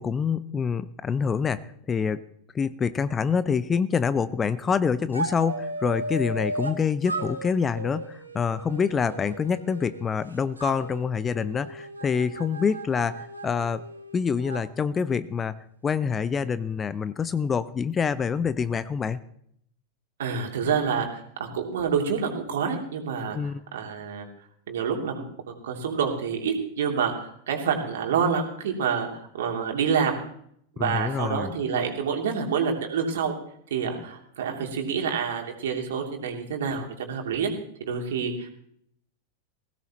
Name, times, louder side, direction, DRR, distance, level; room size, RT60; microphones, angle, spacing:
voice 1, 0.0-2.2 2.5-13.8 14.1-19.2 23.3-23.6 30.8-31.5, left 6 dB, 20° left, 16 dB, 0.6 m, -26 dB
sound 1, 5.1-6.8 7.1-10.2 10.6-14.6, right 2 dB, 80° right, 1.7 m, -36 dB
voice 2, 20.2-23.4 23.7-24.3 24.7-30.2 30.8-33.3 33.7-37.5 37.8-38.5, right 6 dB, 60° right, 2 dB, 3.0 m, -27 dB
20.0 x 17.0 x 3.1 m, 0.68 s
figure-of-eight pair, 90°, 0 cm